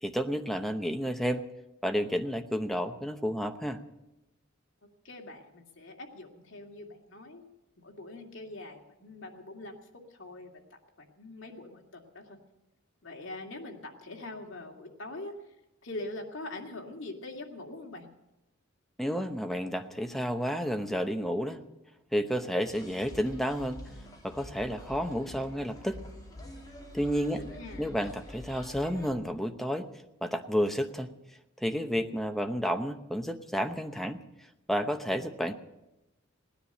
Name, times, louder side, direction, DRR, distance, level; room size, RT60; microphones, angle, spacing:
voice 1, 0.0-1.4 1.8-3.8 19.0-21.6 22.1-23.8 24.2-26.0 26.9-27.4 27.8-29.9 30.2-31.1 31.6-34.2 34.7-35.5, equal, ahead, 6 dB, 0.9 m, -31 dB
voice 2, 5.0-7.5 7.8-9.8 10.1-12.4 13.0-15.3 15.8-18.1 27.4-27.9, left 2 dB, 65° left, 1 dB, 2.4 m, -43 dB
sound 1, 22.6-29.1, left 1 dB, 20° left, 2.5 m, -47 dB
18.0 x 10.0 x 7.8 m, 0.95 s
head